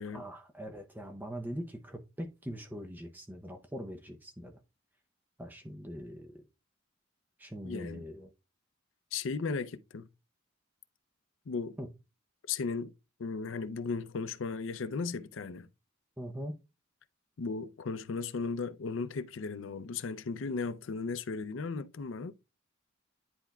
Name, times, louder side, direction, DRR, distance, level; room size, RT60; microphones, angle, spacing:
voice 1, 0.1-4.5 5.4-6.4 7.4-8.3 11.8-11.9 16.2-16.5, equal, 10° right, 0.6 m, -42 dB
voice 2, 7.6-8.0 9.1-10.1 11.5-11.8 12.5-12.9 13.2-15.7 17.4-22.3, left 4 dB, 65° left, 0.5 m, -36 dB
10.0 x 4.3 x 2.3 m
head